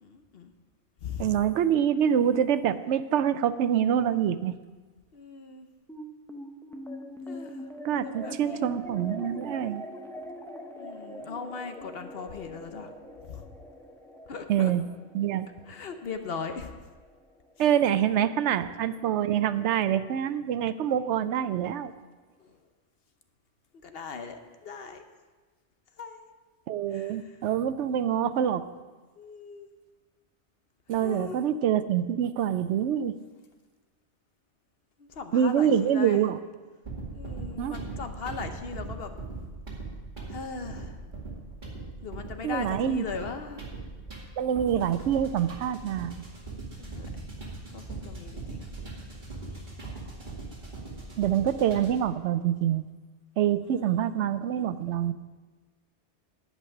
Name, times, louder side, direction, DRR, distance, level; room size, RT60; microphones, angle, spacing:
voice 1, 0.0-0.5 1.0-1.4 5.1-5.7 7.3-7.7 8.0-8.7 10.8-12.9 13.2-13.5 14.3-14.7 15.7-16.7 22.4-22.6 23.8-25.0 26.0-26.2 26.9-27.4 29.2-29.7 30.9-31.4 35.0-36.3 37.1-39.1 40.3-41.0 42.0-43.6 46.8-47.1 47.7-48.7 49.5-49.7 50.7-51.1 53.6-54.1, left 5 dB, 60° left, 7 dB, 1.0 m, -39 dB
voice 2, 1.2-4.6 7.8-9.8 14.5-14.8 15.1-15.5 17.6-21.9 26.7-28.6 30.9-33.2 35.3-36.4 37.6-37.7 42.4-43.0 44.4-46.3 51.2-52.9 53.4-55.1, right 9 dB, 85° right, 13 dB, 0.9 m, -26 dB
sound 1, 5.9-18.5, equal, 5° left, 0.6 m, -43 dB
sound 2, 36.8-52.1, right 3 dB, 45° right, 2.3 m, -40 dB
10.5 x 5.6 x 8.3 m, 1.3 s
omnidirectional pair, 1.2 m